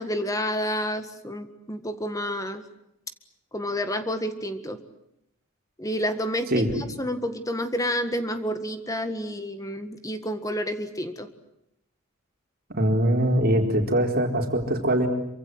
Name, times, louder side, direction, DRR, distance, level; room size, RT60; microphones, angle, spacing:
voice 1, 0.0-2.6 3.5-4.8 5.8-11.3, equal, 15° left, 9 dB, 1.7 m, -29 dB
voice 2, 12.7-15.1, right 1 dB, 45° right, 3 dB, 4.3 m, -22 dB
27.0 x 25.0 x 8.0 m, 0.79 s
head